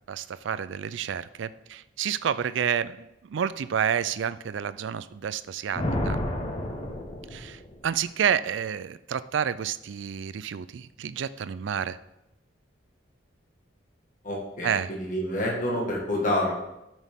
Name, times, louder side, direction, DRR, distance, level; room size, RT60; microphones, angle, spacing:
voice 1, 0.1-6.2 7.3-12.0 14.6-14.9, right 8 dB, 75° right, 15 dB, 0.4 m, -29 dB
Thunder, 5.7-8.0, left 1 dB, 30° left, 1.0 m, -30 dB
voice 2, 14.2-16.5, left 1 dB, 45° left, -2 dB, 1.6 m, -28 dB
13.0 x 6.2 x 3.6 m, 0.89 s
head